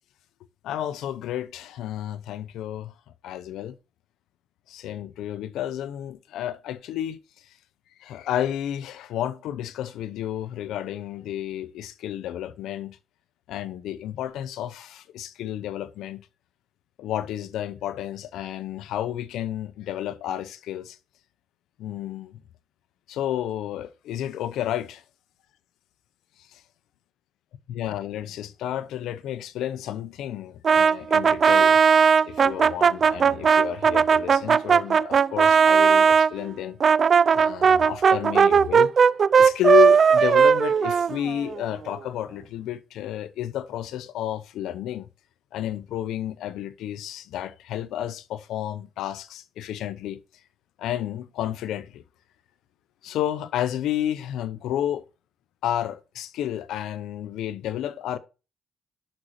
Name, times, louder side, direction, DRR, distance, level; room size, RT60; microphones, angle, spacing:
voice 1, 0.6-2.9 3.2-3.7 4.7-7.2 8.0-13.0 13.5-16.2 17.0-21.0 21.8-22.4 23.1-25.0 26.5-26.6 27.7-31.8 32.2-36.8 37.3-38.9 39.3-45.1 45.5-50.2 50.8-52.0 53.0-55.0 55.6-58.2, left 11 dB, 85° left, 0.8 m, -31 dB
Brass instrument, 30.6-36.3 36.8-41.6, right 6 dB, 50° right, 0.3 m, -18 dB
10.5 x 6.4 x 2.8 m
cardioid pair, 90°, 0 cm